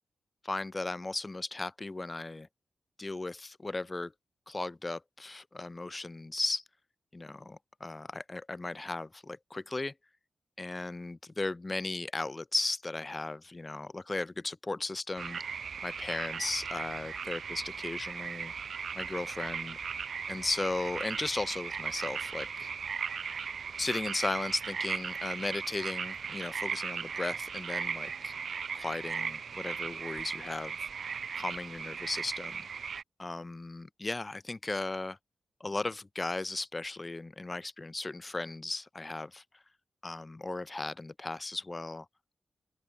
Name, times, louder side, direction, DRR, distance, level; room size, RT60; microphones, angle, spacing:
voice 1, 0.4-2.5 3.0-4.1 4.5-6.6 7.1-9.9 10.6-15.4 15.8-18.5 18.9-19.8 20.3-22.7 23.8-28.3 28.7-30.9 31.3-32.7 33.2-35.2 35.6-39.4 40.0-42.1, left 2 dB, 20° left, 0.9 m, -36 dB
sound 1, 15.2-33.0, right 6 dB, 55° right, 0.6 m, -37 dB
open air
wide cardioid pair, 170°, 0 cm